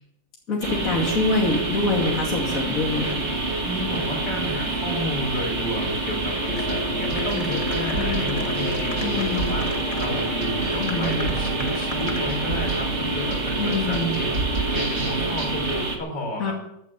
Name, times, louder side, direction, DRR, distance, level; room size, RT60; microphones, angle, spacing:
voice 1, 0.5-3.2 8.0-8.3 9.0-9.5 10.8-11.3 13.6-14.1 16.4-16.5, left 3 dB, 45° left, -2 dB, 3.0 m, -25 dB
sound 1, 0.6-16.0, right 3 dB, 35° right, 2.3 m, -27 dB
voice 2, 3.6-14.4 14.7-16.5, left 1 dB, 65° left, 2 dB, 4.5 m, -32 dB
sound 2, 6.4-15.5, right 1 dB, 75° right, 6.3 m, -31 dB
sound 3, 6.6-6.7 7.1-10.1 10.9-12.3, left 2 dB, 20° left, 1.3 m, -39 dB
17.0 x 9.6 x 7.2 m, 0.80 s
omnidirectional pair, 2.1 m